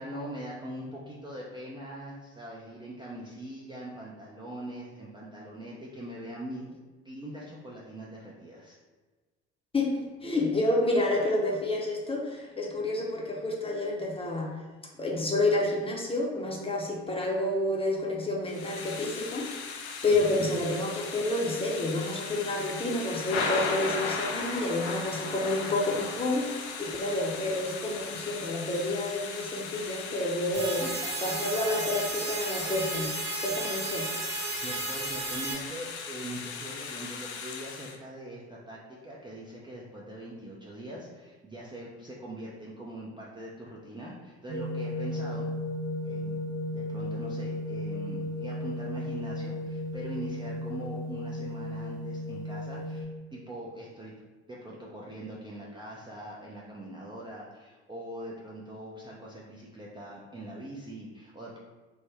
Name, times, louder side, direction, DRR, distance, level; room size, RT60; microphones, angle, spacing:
voice 1, 0.0-6.6 7.0-8.8 20.2-20.5 30.8-31.1 32.2-32.7 34.5-38.8 39.0-45.5 46.0-46.4 46.7-54.1 54.5-61.6, right 1 dB, 15° right, -5 dB, 0.5 m, -42 dB
voice 2, 9.7-14.6 15.0-30.8 31.2-33.1 33.4-34.1, left 2 dB, 15° left, -2 dB, 0.7 m, -29 dB
Thunder / Rain, 18.5-38.0, left 5 dB, 70° left, 0.5 m, -37 dB
sound 1, 30.5-35.5, right 3 dB, 60° right, 1.3 m, -34 dB
sound 2, 44.5-53.0, left 1 dB, 75° right, 0.8 m, -35 dB
3.5 x 2.1 x 3.3 m, 1.3 s
hypercardioid pair, 60°, 34 cm